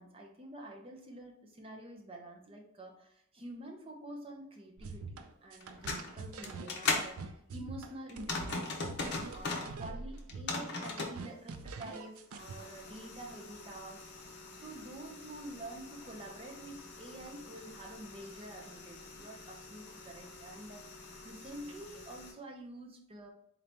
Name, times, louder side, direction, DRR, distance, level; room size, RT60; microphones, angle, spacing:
voice 1, 0.0-20.8 21.2-23.3, right 1 dB, 25° right, 1 dB, 0.6 m, -48 dB
sound 1, 4.8-12.6, right 4 dB, 80° right, 0.4 m, -44 dB
sound 2, 5.6-7.1 8.1-9.7 10.2-11.2 12.4-22.3, left 3 dB, 50° left, 0.7 m, -41 dB
3.9 x 2.8 x 3.4 m, 0.72 s
head